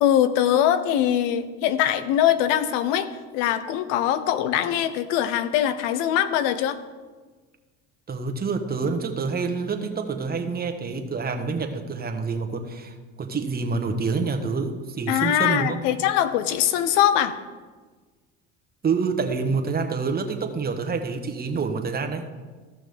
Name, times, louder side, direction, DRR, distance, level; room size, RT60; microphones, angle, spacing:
voice 1, 0.0-6.8 15.1-17.4, left 11 dB, 80° left, 12 dB, 0.7 m, -22 dB
voice 2, 8.1-15.8 18.8-22.3, right 4 dB, 25° right, 5 dB, 1.1 m, -27 dB
14.5 x 6.0 x 3.5 m, 1.4 s
supercardioid pair, 80°, 37 cm